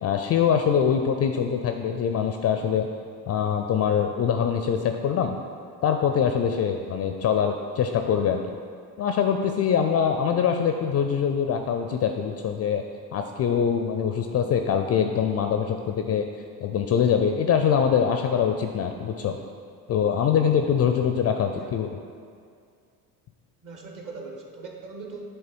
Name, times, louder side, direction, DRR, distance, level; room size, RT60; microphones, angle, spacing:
voice 1, 0.0-2.9 3.3-5.3 5.8-8.4 9.0-12.8 13.1-16.3 16.6-19.4 19.9-21.9, left 7 dB, 35° left, 5 dB, 0.4 m, -23 dB
voice 2, 23.6-25.3, right 3 dB, 40° right, 1 dB, 1.3 m, -40 dB
7.7 x 3.3 x 4.5 m, 2.2 s
hypercardioid pair, 65°, 47 cm